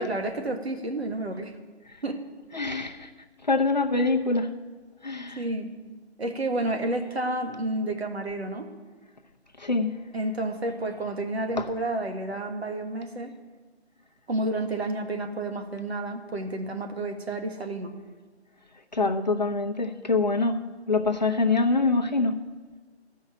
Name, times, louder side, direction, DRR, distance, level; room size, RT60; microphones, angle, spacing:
voice 1, 0.0-1.5 2.0-2.2 5.4-5.7 6.2-8.7 10.1-13.3 14.3-18.0, right 2 dB, 65° right, 5 dB, 1.8 m, -30 dB
voice 2, 2.5-3.1 3.5-4.5 5.0-5.4 9.6-9.9 11.6-11.7 18.9-20.6 20.9-22.4, left 3 dB, 40° left, 2 dB, 0.7 m, -24 dB
14.0 x 5.6 x 9.1 m, 1.4 s
figure-of-eight pair, 180°, 34 cm